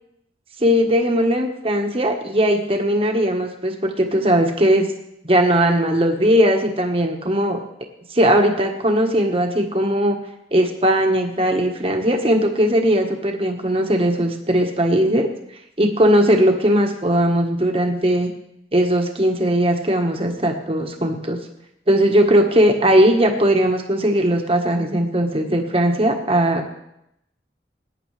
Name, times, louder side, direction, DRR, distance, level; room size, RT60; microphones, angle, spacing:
voice 1, 0.6-4.9 5.2-7.6 8.1-10.2 10.5-15.3 15.8-18.3 18.7-21.4 21.9-26.7, equal, 30° right, 3 dB, 1.4 m, -18 dB
20.0 x 10.0 x 3.3 m, 0.81 s
head